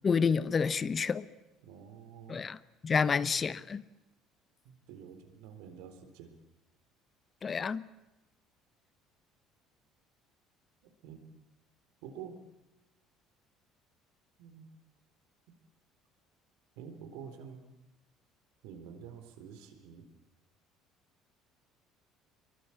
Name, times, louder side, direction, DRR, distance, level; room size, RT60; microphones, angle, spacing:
voice 1, 0.0-1.2 2.3-2.6 2.8-3.8 7.4-7.8, left 5 dB, 35° left, 1.0 m, -29 dB
voice 2, 1.6-2.4 3.0-3.5 4.6-6.4 10.8-11.2 12.0-12.5 14.4-14.7 16.8-17.6 18.6-20.1, right 7 dB, 75° right, 3.9 m, -48 dB
24.0 x 22.0 x 8.6 m
hypercardioid pair, 70°, 0 cm